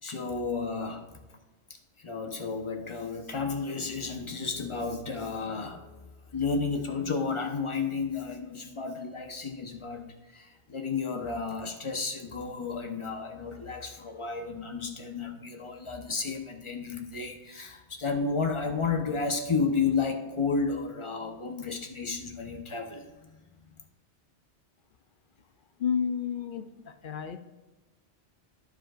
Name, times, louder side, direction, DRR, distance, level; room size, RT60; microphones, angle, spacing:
voice 1, 0.0-1.1 2.0-23.4, left 4 dB, 30° left, 4 dB, 1.0 m, -32 dB
voice 2, 25.8-27.4, left 7 dB, 55° left, 9 dB, 0.7 m, -31 dB
14.5 x 5.0 x 2.5 m, 1.2 s
omnidirectional pair, 1.2 m